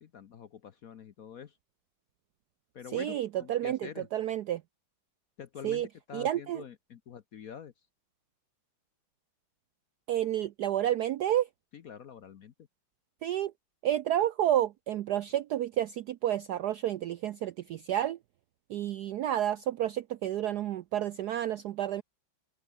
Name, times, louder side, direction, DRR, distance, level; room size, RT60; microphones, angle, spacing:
voice 1, 0.0-1.6 2.7-4.1 5.4-7.7 11.7-12.5, left 8 dB, 55° left, 1.0 m, -46 dB
voice 2, 2.9-4.6 5.6-5.9 6.1-6.6 10.1-11.5 13.2-13.5 13.8-18.2 18.7-22.0, right 12 dB, 80° right, 0.9 m, -30 dB
omnidirectional pair, 2.3 m